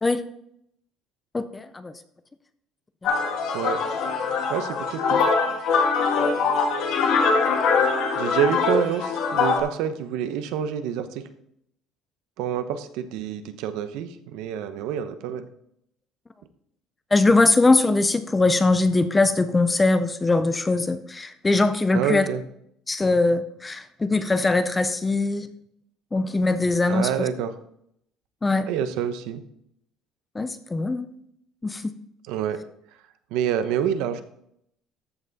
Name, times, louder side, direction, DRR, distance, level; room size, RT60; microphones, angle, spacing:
voice 1, 1.3-1.9 3.0-3.1 17.1-22.3 22.9-25.5 26.1-27.3 28.4-28.7 30.3-31.1 31.6-31.9, left 3 dB, 10° left, 12 dB, 0.4 m, -21 dB
sound 1, 3.0-9.6, left 5 dB, 50° left, 1.7 m, -23 dB
voice 2, 4.5-5.2 8.2-11.3 12.4-15.5 21.9-22.4 26.9-27.5 28.7-29.4 32.3-32.6 33.3-34.2, right 9 dB, 70° right, 11 dB, 0.8 m, -27 dB
13.5 x 5.7 x 4.0 m, 0.74 s
cardioid pair, 180°, 0 cm